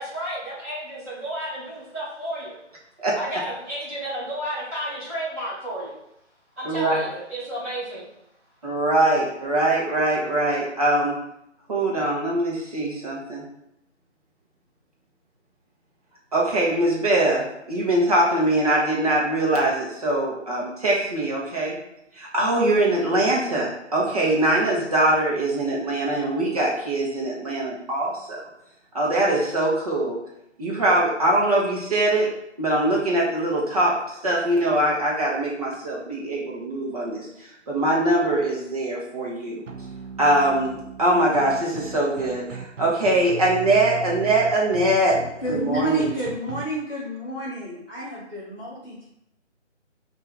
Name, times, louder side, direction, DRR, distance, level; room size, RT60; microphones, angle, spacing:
voice 1, 0.0-2.6 3.1-5.9 6.6-8.0, right 1 dB, 15° right, -12 dB, 1.5 m, -32 dB
voice 2, 6.6-7.0 8.6-11.1 11.7-13.4 16.3-21.7 22.2-28.4 28.9-30.2 30.6-32.3 32.6-33.9 34.2-37.2 37.7-39.6 40.2-45.2 45.5-46.1, right 1 dB, 30° right, -4 dB, 1.2 m, -22 dB
sound 1, 39.7-46.6, right 5 dB, 85° right, 0.7 m, -37 dB
voice 3, 45.4-49.1, equal, 5° left, -14 dB, 1.0 m, -30 dB
5.2 x 2.7 x 3.4 m, 0.79 s
figure-of-eight pair, 165°, 36 cm